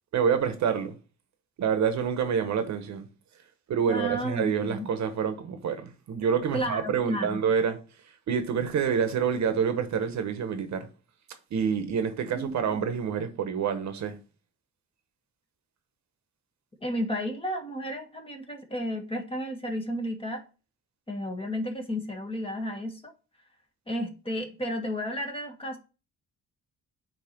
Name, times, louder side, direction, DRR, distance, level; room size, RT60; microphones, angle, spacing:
voice 1, 0.1-1.0 1.6-3.1 3.7-7.8 8.3-10.9 11.5-14.2, right 7 dB, 65° right, 1.0 m, -27 dB
voice 2, 3.9-4.9 6.5-7.4 12.3-12.6 16.8-20.4 21.1-23.1 23.9-25.8, equal, 20° left, 1.5 m, -32 dB
8.7 x 3.0 x 4.5 m
cardioid pair, 90°, 30 cm